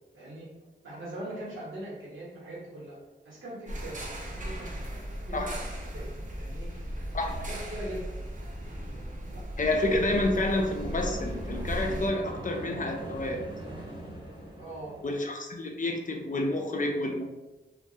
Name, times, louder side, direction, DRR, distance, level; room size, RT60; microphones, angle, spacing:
voice 1, 0.1-0.5 0.8-3.0 3.2-5.6 5.9-6.1 6.4-6.7 7.2-8.0 8.4-8.5 9.3-9.4 14.6-15.1, right 1 dB, 80° right, -6 dB, 1.0 m, -41 dB
sound 1, 3.7-12.1, equal, 40° right, 0.6 m, -37 dB
voice 2, 9.6-13.4 15.0-17.2, left 2 dB, 40° left, 2 dB, 0.5 m, -29 dB
sound 2, 9.6-15.1, right 1 dB, 20° right, 0.9 m, -40 dB
2.2 x 2.2 x 2.7 m, 1.1 s
cardioid pair, 40°, 20 cm